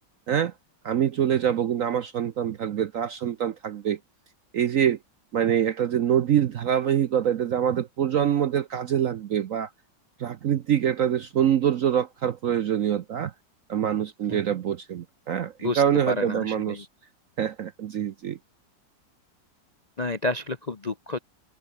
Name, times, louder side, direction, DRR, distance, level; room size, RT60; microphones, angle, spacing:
voice 1, 0.8-4.0 4.5-5.0 5.3-9.7 10.2-13.3 13.7-16.9 17.4-18.4, right 9 dB, 60° right, 0.9 m, -25 dB
voice 2, 15.6-16.8 20.0-21.2, left 2 dB, 40° left, 0.6 m, -30 dB
omnidirectional pair, 2.0 m